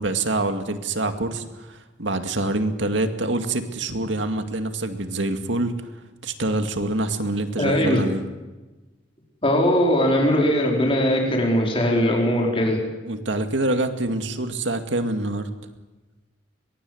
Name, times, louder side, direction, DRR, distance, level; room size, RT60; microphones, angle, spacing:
voice 1, 0.0-5.7 6.2-8.2 13.0-15.5, right 2 dB, 80° right, 7 dB, 2.2 m, -25 dB
voice 2, 7.6-8.0 9.4-12.8, equal, 30° left, -1 dB, 5.0 m, -20 dB
23.0 x 22.0 x 8.0 m, 1.2 s
head